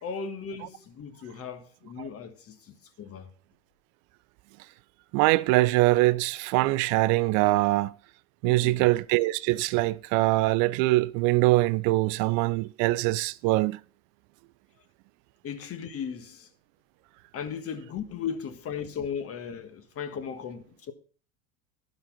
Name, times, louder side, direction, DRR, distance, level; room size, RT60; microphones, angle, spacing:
voice 1, 0.0-3.3 8.4-8.9 15.4-16.5 17.3-20.9, left 7 dB, 30° left, 1.6 m, -37 dB
voice 2, 5.1-7.9 8.4-13.8, right 20 dB, 45° right, 0.5 m, -23 dB
12.0 x 5.3 x 5.7 m
hypercardioid pair, 105°, 44 cm